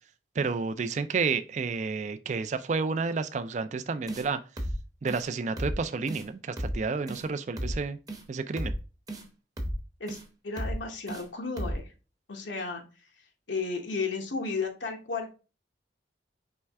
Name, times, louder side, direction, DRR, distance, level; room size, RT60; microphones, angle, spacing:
voice 1, 0.4-4.4 5.0-8.0 8.3-8.7, right 4 dB, 40° right, 0.3 m, -30 dB
sound 1, 4.1-4.3 4.6-4.8 5.1-5.2 5.6-5.8 6.1-6.2 6.6-6.8 7.1-7.2 7.6-7.8 8.1-8.2 8.6-8.8 9.1-9.2 9.6-9.8 10.1-10.2 10.6-10.8 11.1-11.2 11.6-11.8, equal, 20° right, 0.8 m, -33 dB
voice 2, 10.4-11.9 12.3-12.8 13.5-15.3, left 4 dB, 80° left, 0.9 m, -33 dB
4.5 x 3.2 x 3.4 m
head